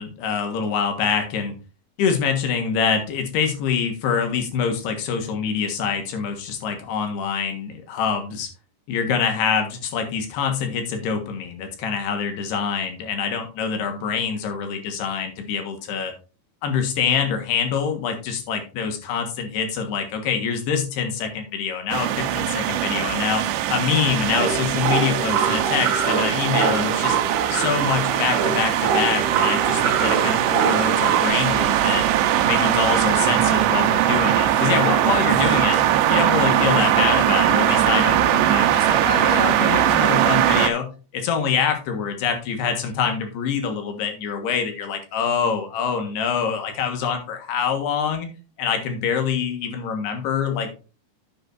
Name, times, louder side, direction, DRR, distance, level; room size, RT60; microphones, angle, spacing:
voice 1, 0.0-1.6 2.0-8.5 8.9-16.1 16.6-23.4 23.7-27.2 27.5-32.0 32.4-35.8 36.1-40.9 41.1-48.3 48.6-50.7, left 6 dB, 70° left, 5 dB, 3.4 m, -25 dB
sound 1, 21.9-40.7, right 11 dB, 80° right, 3.0 m, -21 dB
sound 2, 24.3-31.3, right 7 dB, 65° right, 2.4 m, -24 dB
10.5 x 8.9 x 2.6 m, 0.33 s
omnidirectional pair, 5.1 m